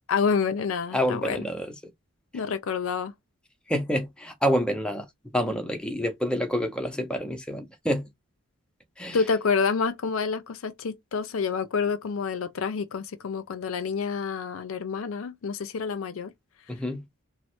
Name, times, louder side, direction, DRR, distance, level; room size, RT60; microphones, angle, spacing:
voice 1, 0.1-1.4 2.3-3.1 9.1-16.3, left 5 dB, 65° left, 0.5 m, -28 dB
voice 2, 0.9-1.7 3.7-5.1 5.3-8.1 9.0-9.2 16.7-17.1, equal, 5° left, 0.5 m, -27 dB
3.1 x 2.0 x 2.9 m
head